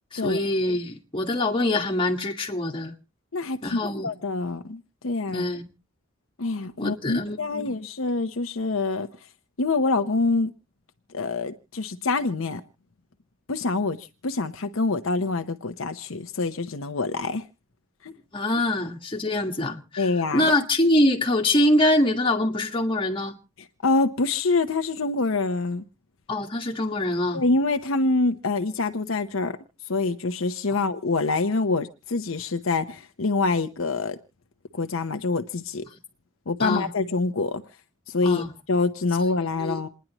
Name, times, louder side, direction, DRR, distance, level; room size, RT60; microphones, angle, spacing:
voice 1, 0.1-2.9 3.6-4.1 5.3-5.6 6.8-7.7 18.3-23.4 26.3-27.4 30.7-30.8 36.6-36.9 38.2-38.5 39.6-39.8, left 1 dB, 25° left, 1.6 m, -24 dB
voice 2, 3.3-5.4 6.4-9.1 9.6-10.5 11.1-12.6 13.5-17.4 18.0-18.1 20.0-20.5 23.8-25.8 27.3-29.5 29.9-34.2 34.7-35.8 36.5-37.6 38.1-39.9, left 3 dB, 70° left, 0.8 m, -26 dB
28.0 x 10.5 x 3.0 m
head